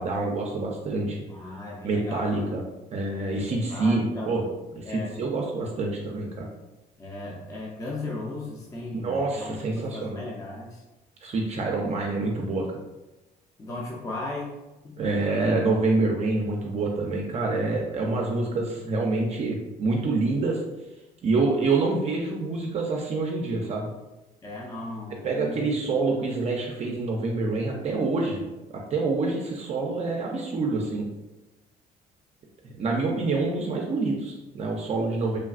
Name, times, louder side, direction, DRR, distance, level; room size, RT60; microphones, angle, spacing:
voice 1, 0.0-1.2 1.8-2.6 2.9-4.4 4.8-6.5 8.9-10.2 11.2-12.7 15.0-20.6 21.2-23.9 25.2-28.4 28.9-31.1 32.6-35.4, right 3 dB, 40° right, -1 dB, 0.4 m, -26 dB
voice 2, 1.3-2.3 3.5-4.3 4.8-5.2 7.0-10.8 13.6-14.5 14.8-15.0 24.4-25.7, left 2 dB, 20° left, -3 dB, 0.5 m, -36 dB
3.3 x 2.3 x 2.4 m, 1.0 s
cardioid pair, 110°, 17 cm